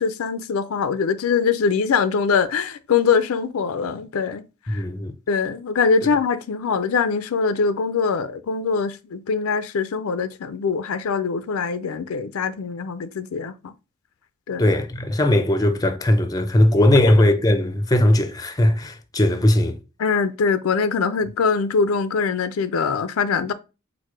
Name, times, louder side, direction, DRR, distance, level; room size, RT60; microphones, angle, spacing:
voice 1, 0.0-4.4 4.7-4.8 5.3-13.7 14.5-14.6 20.0-23.5, left 5 dB, 80° left, 0.4 m, -23 dB
voice 2, 4.7-5.1 14.6-19.8, left 1 dB, 15° left, 0.5 m, -18 dB
4.6 x 2.1 x 4.5 m
head